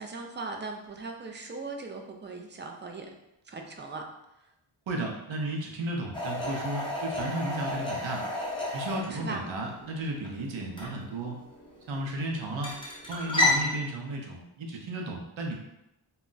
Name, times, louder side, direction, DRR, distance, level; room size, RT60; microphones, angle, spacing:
voice 1, 0.0-3.1 3.5-4.0 4.4-4.5 9.1-9.4, right 3 dB, 25° right, 2 dB, 0.3 m, -39 dB
voice 2, 4.9-8.2 8.7-11.4 11.9-12.8 13.1-15.5, right 2 dB, 65° right, 0 dB, 0.7 m, -34 dB
sound 1, 6.1-13.7, left 2 dB, 10° left, 0.7 m, -32 dB
2.3 x 2.1 x 3.8 m, 0.84 s
wide cardioid pair, 80°, 50 cm